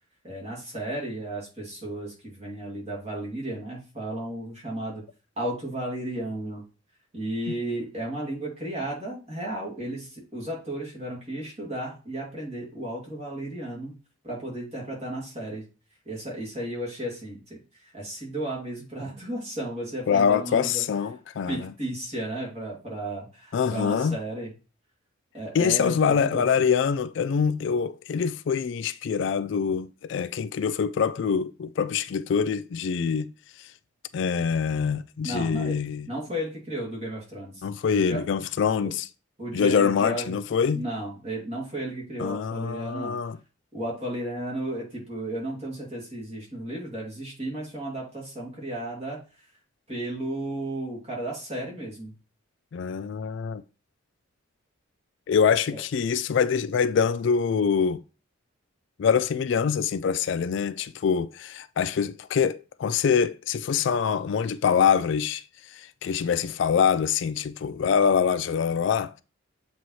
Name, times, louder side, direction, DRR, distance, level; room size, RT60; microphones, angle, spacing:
voice 1, 0.2-5.0 5.4-6.6 7.1-14.0 14.2-15.6 16.0-20.8 21.5-24.5 25.3-26.5 35.2-38.2 38.8-38.9 39.4-40.4 40.7-43.1 43.7-49.2 49.9-52.1 55.7-55.8, right 1 dB, 30° right, 2.5 m, -34 dB
voice 2, 20.1-21.7 23.5-24.2 25.5-33.3 33.6-33.7 34.1-36.1 37.6-39.1 39.5-40.8 42.2-43.4 52.7-53.6 55.3-58.0 59.0-65.4 65.7-69.2, left 6 dB, 55° left, 0.3 m, -24 dB
7.6 x 4.1 x 3.1 m
head